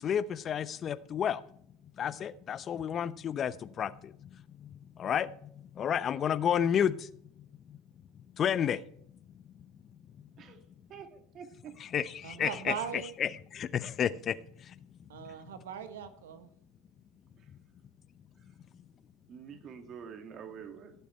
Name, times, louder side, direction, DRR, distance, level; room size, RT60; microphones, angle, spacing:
voice 1, 0.0-1.4 2.0-7.1 7.7-7.8 8.4-8.8 11.9-12.7 13.2-14.7 15.2-15.3, left 8 dB, 40° left, 0.8 m, -31 dB
voice 2, 10.9-11.8 17.4-17.5 19.3-20.9, right 7 dB, 45° right, 2.1 m, -47 dB
voice 3, 12.2-13.1 15.1-16.5, right 8 dB, 85° right, 1.2 m, -39 dB
16.5 x 7.0 x 4.4 m
hypercardioid pair, 85°, 0 cm